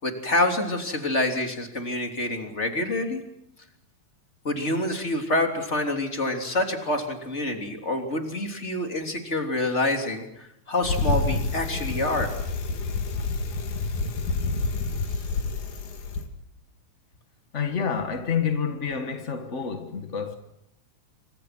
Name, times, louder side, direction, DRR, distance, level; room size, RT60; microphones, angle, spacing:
voice 1, 0.0-3.2 4.4-12.3, left 1 dB, 20° left, 3.4 m, -27 dB
Bicycle, 10.8-16.3, left 3 dB, 80° left, 3.8 m, -28 dB
voice 2, 17.5-20.3, left 6 dB, 40° left, 1.0 m, -28 dB
28.0 x 25.5 x 6.1 m
omnidirectional pair, 3.4 m